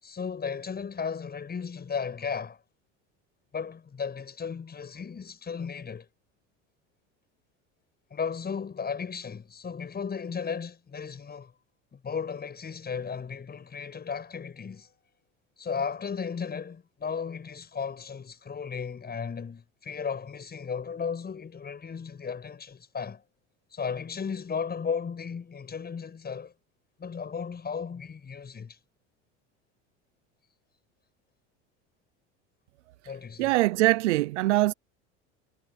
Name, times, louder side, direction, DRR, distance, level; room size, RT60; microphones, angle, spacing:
voice 1, 0.0-2.6 3.5-6.1 8.1-11.5 11.9-14.9 15.6-23.2 23.7-26.5 27.0-28.8 33.1-33.5, left 6 dB, 30° left, 7.6 m, -35 dB
voice 2, 33.4-34.7, right 18 dB, 85° right, 0.8 m, -23 dB
hypercardioid pair, 90°, 34 cm